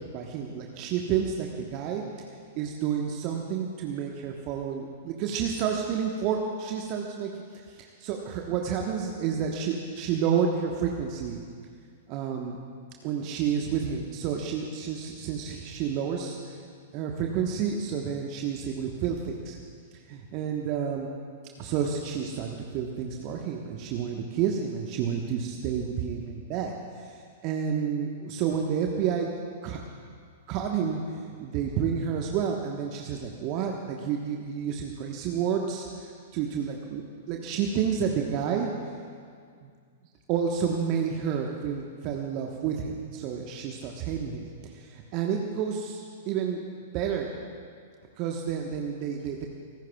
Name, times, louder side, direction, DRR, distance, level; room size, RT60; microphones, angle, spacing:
voice 1, 0.1-2.0 2.5-11.4 12.1-12.6 13.0-16.6 16.9-19.6 20.1-21.1 21.6-26.7 27.0-29.3 29.6-29.8 30.5-31.0 31.4-38.7 39.6-39.7 40.3-44.5 44.7-46.6 46.9-47.3 48.2-49.5, right 7 dB, 40° right, 1 dB, 1.3 m, -30 dB
24.5 x 18.5 x 2.4 m, 2.1 s
figure-of-eight pair, 100°, 0 cm